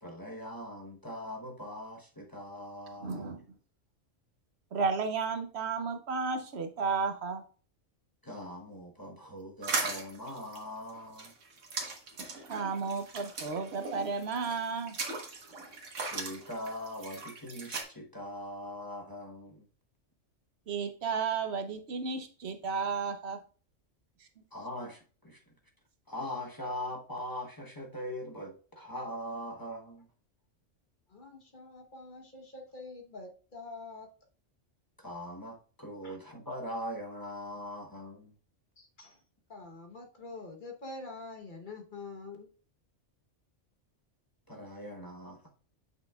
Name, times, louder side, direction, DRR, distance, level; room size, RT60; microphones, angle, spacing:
voice 1, 0.0-3.4 8.2-11.3 16.1-19.6 24.5-25.4 26.1-30.1 35.0-38.3 44.5-45.4, left 1 dB, 20° left, 0.9 m, -41 dB
voice 2, 3.0-3.4 4.7-7.4 12.5-15.0 20.7-23.4 24.2-24.3, right 5 dB, 65° right, 1.0 m, -33 dB
sound 1, 9.6-17.8, right 3 dB, 85° right, 1.6 m, -38 dB
voice 3, 31.1-34.1 36.0-36.2 38.8-39.2 39.5-42.5, left 3 dB, 45° left, 1.2 m, -46 dB
7.7 x 5.8 x 2.3 m
omnidirectional pair, 1.2 m